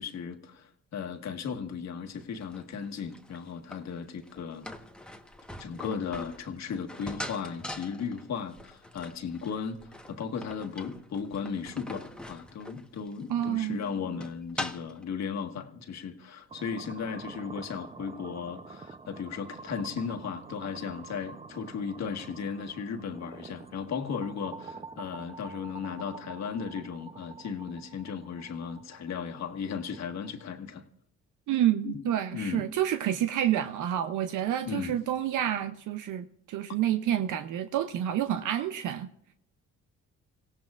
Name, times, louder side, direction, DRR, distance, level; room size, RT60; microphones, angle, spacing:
voice 1, 0.0-4.7 5.6-9.8 10.1-30.8 31.8-32.0 32.3-32.6 34.6-35.0, left 6 dB, 60° left, 1.5 m, -36 dB
sound 1, 2.2-15.0, left 1 dB, 5° left, 1.1 m, -43 dB
voice 2, 13.3-13.8 31.5-39.1, right 11 dB, 80° right, 0.7 m, -29 dB
sound 2, 16.5-30.5, right 4 dB, 20° right, 0.6 m, -47 dB
25.5 x 17.0 x 2.4 m
cardioid pair, 90°, 30 cm